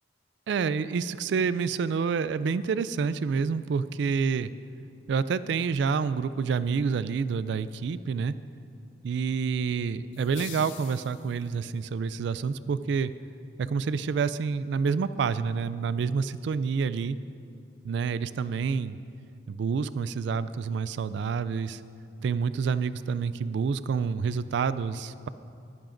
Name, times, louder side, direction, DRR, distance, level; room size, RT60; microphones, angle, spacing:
voice 1, 0.5-4.5 5.1-8.3 9.0-13.1 13.6-17.2 17.8-19.0 19.5-21.8 22.2-25.3, right 5 dB, 70° right, 15 dB, 0.3 m, -28 dB
sound 1, 10.1-11.7, left 12 dB, 85° left, 0.5 m, -45 dB
19.5 x 10.5 x 2.6 m, 2.5 s
head